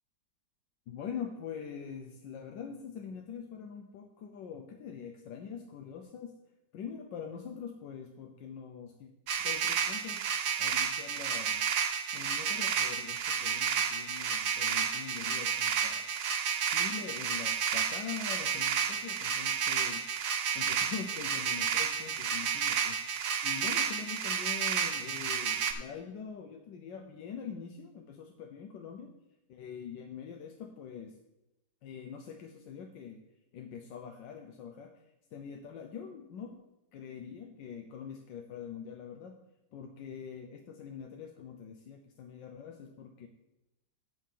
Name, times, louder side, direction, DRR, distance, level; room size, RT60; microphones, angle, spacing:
voice 1, 0.9-6.3 6.7-9.1 9.4-10.3 10.6-11.7 12.1-16.1 16.6-20.1 20.5-23.0 23.4-29.1 29.5-31.2 31.8-33.2 33.5-34.9 35.3-36.6 36.9-39.4 39.7-43.3, left 7 dB, 85° left, 4 dB, 1.5 m, -44 dB
sound 1, 9.3-25.7, right 7 dB, 60° right, 1.0 m, -31 dB
8.7 x 4.7 x 7.3 m, 0.94 s
omnidirectional pair, 1.9 m